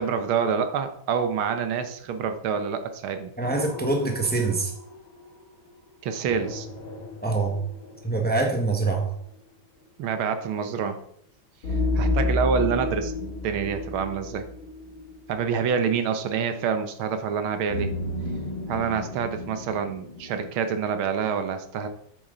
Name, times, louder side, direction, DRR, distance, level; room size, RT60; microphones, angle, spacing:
voice 1, 0.0-3.3 6.0-6.7 10.0-11.0 11.9-14.5 15.3-17.9 18.7-21.9, right 6 dB, 90° right, 8 dB, 1.8 m, -27 dB
sound 1, 3.4-5.2 6.3-8.4 11.6-15.4 17.7-20.6, left 2 dB, 70° left, 3.0 m, -31 dB
voice 2, 3.4-4.7 7.2-7.6 8.0-9.1, right 3 dB, 5° left, 2 dB, 1.0 m, -24 dB
8.5 x 7.3 x 3.9 m, 0.67 s
omnidirectional pair, 2.2 m